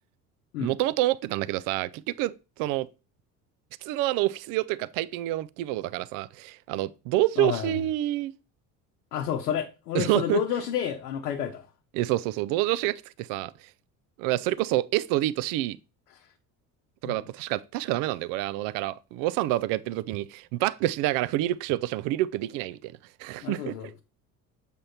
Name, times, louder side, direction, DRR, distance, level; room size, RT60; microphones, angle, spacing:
voice 1, 0.6-2.3 2.6-2.9 3.8-8.3 9.9-10.4 11.9-13.5 14.2-15.8 17.0-22.9 23.2-23.9, right 16 dB, 45° right, 0.5 m, -27 dB
voice 2, 7.4-7.7 9.1-11.7 16.1-16.2 17.0-17.3 23.4-24.0, left 9 dB, 70° left, 0.9 m, -30 dB
7.5 x 3.5 x 4.3 m
figure-of-eight pair, 60°, 47 cm